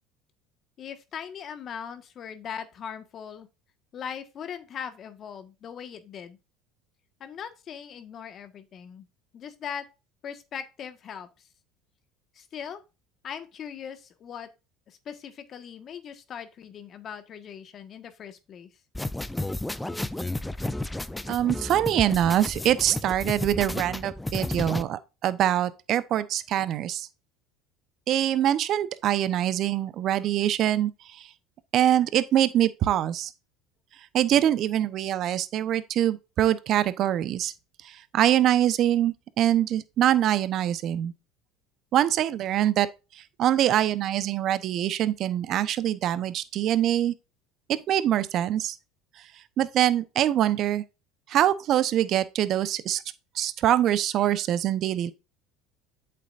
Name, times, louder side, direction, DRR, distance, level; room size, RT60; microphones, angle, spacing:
voice 1, 0.8-3.5 3.9-6.4 7.2-9.1 9.3-9.8 10.2-11.5 12.3-12.8 13.2-14.5 14.9-18.7, left 8 dB, 45° left, 1.5 m, -40 dB
sound 1, 18.9-24.8, left 1 dB, 10° left, 0.6 m, -32 dB
voice 2, 21.3-27.1 28.1-31.3 31.7-33.3 34.1-37.5 37.8-41.1 41.9-42.9 43.1-47.1 47.9-48.8 49.6-50.8 51.3-53.0 53.3-55.1, right 11 dB, 55° right, 0.8 m, -24 dB
8.4 x 6.9 x 2.5 m
supercardioid pair, 85°, 0 cm